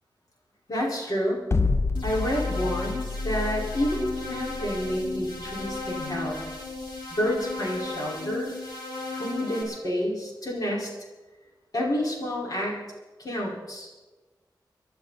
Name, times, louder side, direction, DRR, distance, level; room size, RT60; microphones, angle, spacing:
voice 1, 0.7-1.4 2.0-6.4 7.1-8.5 9.1-10.9 11.7-12.8 13.2-13.9, equal, 55° left, -4 dB, 5.2 m, -29 dB
sound 1, 1.5-7.7, left 3 dB, 35° left, 0.7 m, -29 dB
sound 2, 1.9-9.6, left 3 dB, 85° left, 4.2 m, -35 dB
25.0 x 11.5 x 4.3 m, 1.2 s
wide cardioid pair, 70°, 8 cm